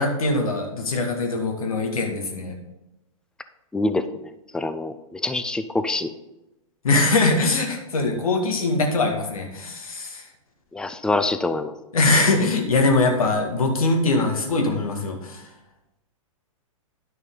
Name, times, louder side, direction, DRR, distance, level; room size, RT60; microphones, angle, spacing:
voice 1, 0.0-2.6 6.8-10.2 11.9-15.4, left 2 dB, 90° left, 3 dB, 2.1 m, -22 dB
voice 2, 3.7-4.1 4.5-6.1 10.7-11.7, left 2 dB, 5° left, 11 dB, 0.4 m, -25 dB
10.5 x 6.4 x 3.8 m, 0.94 s
hypercardioid pair, 135°, 18 cm